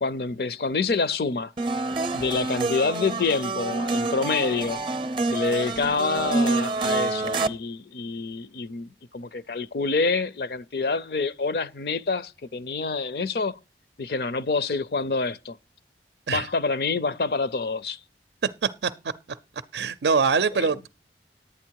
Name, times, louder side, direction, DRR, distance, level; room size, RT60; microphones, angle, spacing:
voice 1, 0.0-1.5 2.1-4.8 5.3-13.6 14.0-15.6 16.3-18.0 20.6-20.7, left 4 dB, 60° left, 0.5 m, -27 dB
sound 1, 1.6-7.5, right 3 dB, 30° right, 0.6 m, -27 dB
voice 2, 19.7-20.9, right 5 dB, 80° right, 0.5 m, -23 dB
11.0 x 9.2 x 4.6 m
head